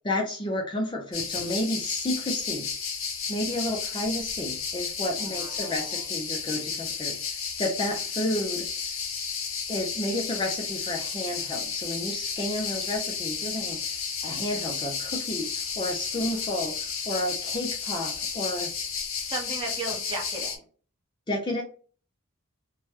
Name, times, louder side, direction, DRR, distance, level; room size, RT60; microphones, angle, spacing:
voice 1, 0.0-2.7 3.3-8.7 9.7-18.7 21.3-21.6, left 1 dB, 20° left, 0 dB, 0.5 m, -31 dB
sound 1, 1.1-20.6, left 6 dB, 65° left, 0.7 m, -32 dB
voice 2, 5.1-6.0 19.3-20.6, right 2 dB, 25° right, -2 dB, 1.0 m, -36 dB
3.1 x 2.2 x 3.0 m, 0.40 s
head